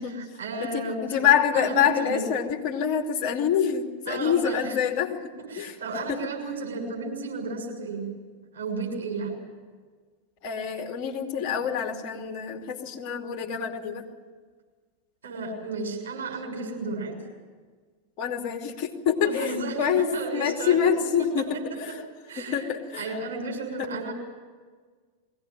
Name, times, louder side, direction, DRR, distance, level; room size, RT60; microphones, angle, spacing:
voice 1, 0.0-1.0 1.5-2.2 4.1-4.8 5.5-8.1 8.5-9.4 15.2-17.2 19.2-20.8 21.2-21.6 22.3-22.7 22.9-24.1, right 3 dB, 65° right, 0 dB, 6.6 m, -33 dB
voice 2, 0.6-5.2 5.6-5.7 6.1-6.2 10.4-14.1 18.2-20.1 20.3-21.9 22.4-23.0 23.8-23.9, left 8 dB, 40° left, 2 dB, 2.8 m, -26 dB
22.0 x 17.5 x 9.2 m, 1.5 s
figure-of-eight pair, 90°, 0 cm